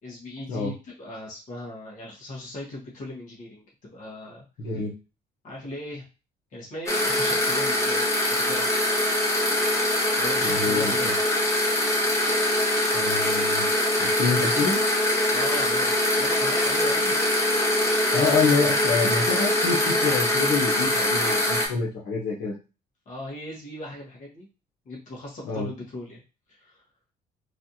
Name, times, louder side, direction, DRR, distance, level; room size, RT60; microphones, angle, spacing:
voice 1, 0.0-3.6 3.9-4.8 5.4-6.0 6.5-8.0 8.3-8.7 10.2-11.1 15.3-17.2 23.0-24.5 24.8-26.2 26.5-26.8, left 1 dB, 50° left, -4 dB, 1.3 m, -38 dB
voice 2, 4.6-4.9 10.4-11.1 12.9-13.7 14.0-14.8 18.1-22.5 25.4-25.7, left 4 dB, 75° left, -6 dB, 1.0 m, -27 dB
sound 1, 6.9-21.7, left 1 dB, 15° left, 0.9 m, -23 dB
3.2 x 2.5 x 2.8 m, 0.31 s
cardioid pair, 110°, 17 cm